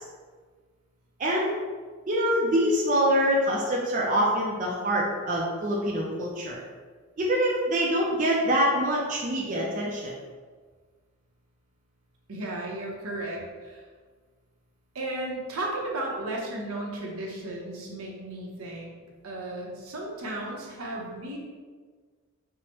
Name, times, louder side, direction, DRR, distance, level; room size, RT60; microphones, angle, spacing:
voice 1, 1.2-1.6 2.1-6.6 7.2-10.1, equal, 35° right, -3 dB, 0.4 m, -25 dB
voice 2, 12.3-13.8 14.9-18.9 19.2-21.4, right 2 dB, 75° right, -2 dB, 0.7 m, -34 dB
4.6 x 2.1 x 2.9 m, 1.5 s
head